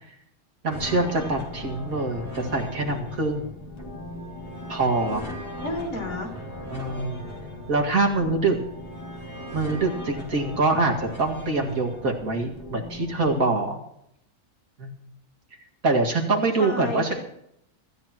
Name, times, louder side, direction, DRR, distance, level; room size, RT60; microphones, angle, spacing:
voice 1, 0.6-3.5 4.7-5.2 6.7-7.2 7.7-8.6 9.5-13.8 14.8-14.9 15.8-17.1, right 3 dB, 70° right, 0 dB, 2.6 m, -24 dB
sound 1, 0.7-13.4, left 1 dB, 20° left, 2.6 m, -38 dB
voice 2, 5.0-6.3 16.6-17.1, left 2 dB, 70° left, -1 dB, 3.7 m, -32 dB
24.0 x 13.5 x 3.0 m, 0.76 s
omnidirectional pair, 1.5 m